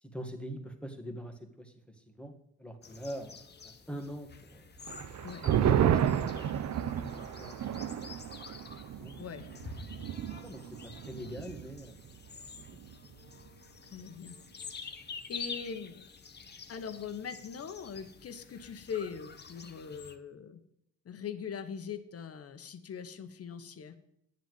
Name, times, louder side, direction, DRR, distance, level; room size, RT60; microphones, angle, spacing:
voice 1, 0.0-4.7 5.4-7.7 8.6-9.5 10.1-12.0 12.5-12.6, equal, 5° left, 4 dB, 2.1 m, -44 dB
sound 1, 2.8-20.2, left 5 dB, 35° left, 1.3 m, -48 dB
sound 2, 4.9-11.8 12.1-12.2 12.6-13.1, right 10 dB, 65° right, 0.9 m, -32 dB
voice 2, 9.2-9.5 13.9-14.3 14.7-14.9 15.3-16.0 16.7-20.6 21.0-23.9, left 7 dB, 50° left, 9 dB, 1.5 m, -41 dB
10.5 x 7.5 x 7.9 m, 0.77 s
cardioid pair, 90°, 30 cm